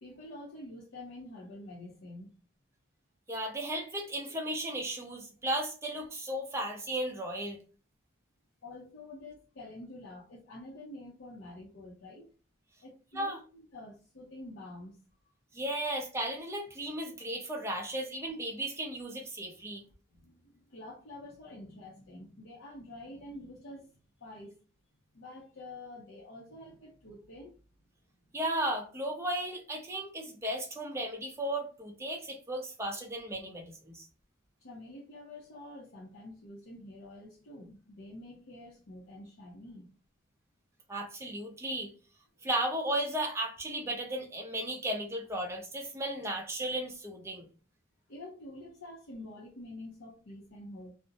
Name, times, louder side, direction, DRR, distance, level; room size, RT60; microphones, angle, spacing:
voice 1, 0.0-2.3 8.6-12.3 12.8-15.0 19.8-23.9 24.2-24.6 25.1-27.6 28.3-28.4 34.6-39.9 42.4-42.5 48.1-50.9, left 1 dB, 75° left, 0.6 m, -47 dB
voice 2, 3.3-7.6 13.1-13.4 15.5-19.8 28.3-34.1 40.9-41.9 42.4-47.5, right 1 dB, 15° right, 0.5 m, -35 dB
2.5 x 2.0 x 2.6 m
head